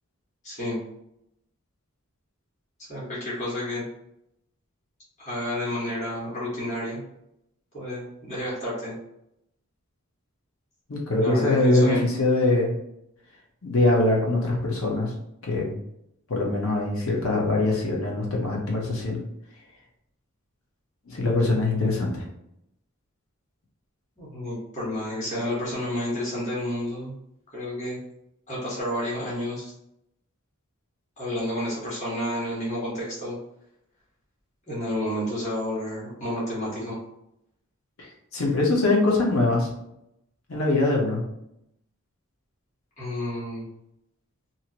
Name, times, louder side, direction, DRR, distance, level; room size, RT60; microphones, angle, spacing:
voice 1, 0.4-0.8 2.9-3.8 5.2-7.0 7.7-8.9 11.1-12.0 24.2-27.1 27.5-28.0 28.5-29.7 31.2-33.4 34.7-37.0 43.0-43.7, left 1 dB, 35° left, -8 dB, 1.5 m, -30 dB
voice 2, 10.9-12.7 13.6-15.1 15.5-15.7 16.3-19.2 21.1-22.2 38.3-39.7 40.5-41.2, left 2 dB, 80° left, -2 dB, 1.0 m, -23 dB
2.8 x 2.7 x 2.9 m, 0.80 s
head